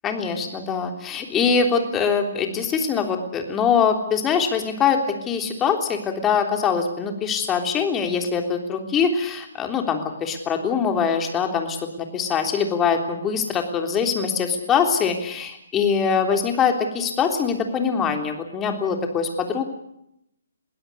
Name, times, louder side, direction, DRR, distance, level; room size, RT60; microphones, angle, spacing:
voice 1, 0.0-19.6, left 6 dB, 15° left, 5 dB, 3.5 m, -23 dB
22.0 x 16.5 x 9.9 m, 0.79 s
figure-of-eight pair, 135°, 0 cm